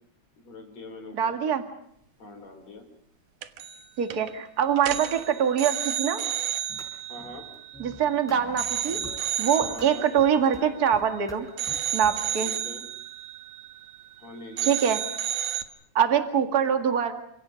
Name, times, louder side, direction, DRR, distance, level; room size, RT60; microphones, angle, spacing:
voice 1, 0.4-1.3 2.2-2.8 7.1-7.5 9.6-10.1 12.4-12.8 14.2-14.8, left 2 dB, 55° left, 4 dB, 5.8 m, -43 dB
voice 2, 1.1-1.6 4.0-6.2 7.8-11.5 11.9-12.5 14.6-15.0 15.9-17.1, right 8 dB, 35° right, 6 dB, 2.1 m, -24 dB
sound 1, 3.4-3.8 4.1-4.3 4.8-8.1 8.6-11.2 11.6-14.3 14.6-15.6, right 10 dB, 90° right, 2.9 m, -32 dB
sound 2, 6.7-6.9 7.2-9.9 10.2-10.6 10.9-12.5, left 1 dB, ahead, 4.8 m, -46 dB
29.5 x 27.0 x 5.2 m, 0.69 s
omnidirectional pair, 3.5 m